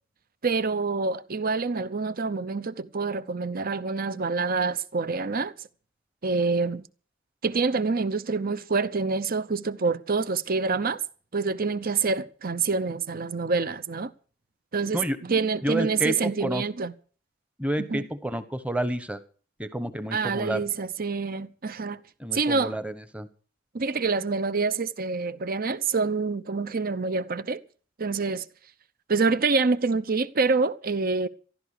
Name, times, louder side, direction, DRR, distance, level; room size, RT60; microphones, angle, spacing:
voice 1, 0.4-5.5 6.2-6.8 7.4-11.0 11.3-14.1 14.7-16.9 17.9-18.0 20.1-22.0 22.3-22.8 23.7-27.6 28.0-28.4 29.1-31.3, right 4 dB, 45° right, 0.8 m, -26 dB
voice 2, 15.6-16.6 17.6-19.2 19.6-20.6 22.2-23.3, right 1 dB, 5° right, 1.1 m, -29 dB
14.0 x 12.0 x 6.6 m
head